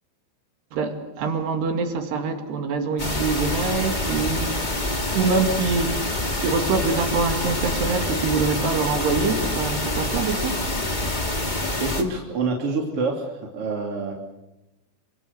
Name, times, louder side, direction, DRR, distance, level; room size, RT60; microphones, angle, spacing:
voice 1, 0.7-4.7 5.1-6.0 6.4-10.7, right 4 dB, 65° right, 6 dB, 4.1 m, -25 dB
sound 1, 3.0-12.0, left 1 dB, 45° left, 0.5 m, -26 dB
voice 2, 11.8-14.1, right 3 dB, 35° right, 0 dB, 3.1 m, -26 dB
28.5 x 26.0 x 6.8 m, 0.95 s
omnidirectional pair, 5.4 m